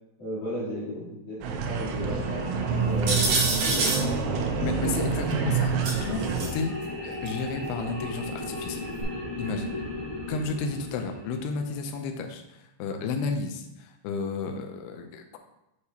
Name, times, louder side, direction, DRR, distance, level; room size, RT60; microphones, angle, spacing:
voice 1, 0.2-2.5 2.8-4.9 5.2-5.5 9.7-9.8, left 1 dB, 50° left, -8 dB, 2.3 m, -35 dB
sound 1, 1.4-6.5, right 5 dB, 80° right, 2.9 m, -27 dB
sound 2, 1.6-11.9, left 1 dB, 30° left, 0.5 m, -38 dB
sound 3, 3.1-4.0 5.8-6.5 7.3-7.4 9.0-9.1, right 3 dB, 60° right, 2.7 m, -26 dB
voice 2, 4.6-5.7 6.0-6.8 7.0-8.9 9.4-9.8 10.3-15.4, left 4 dB, 85° left, 4 dB, 2.3 m, -32 dB
8.5 x 4.7 x 2.8 m, 0.90 s
omnidirectional pair, 5.4 m